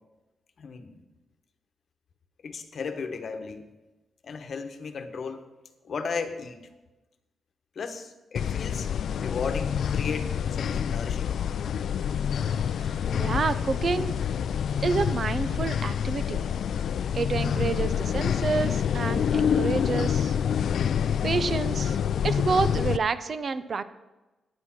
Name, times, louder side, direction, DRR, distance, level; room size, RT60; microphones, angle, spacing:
voice 1, 0.6-1.0 2.4-3.7 4.2-5.5 5.8-6.7 7.7-11.3, left 5 dB, 55° left, 7 dB, 1.2 m, -35 dB
sound 1, 8.4-23.0, left 8 dB, 70° left, 0.4 m, -27 dB
voice 2, 12.8-14.2 14.8-16.5 17.1-20.4 21.2-22.0 22.2-23.8, right 4 dB, 45° right, 13 dB, 0.6 m, -28 dB
9.8 x 9.5 x 5.9 m, 1.1 s
wide cardioid pair, 135°, 0 cm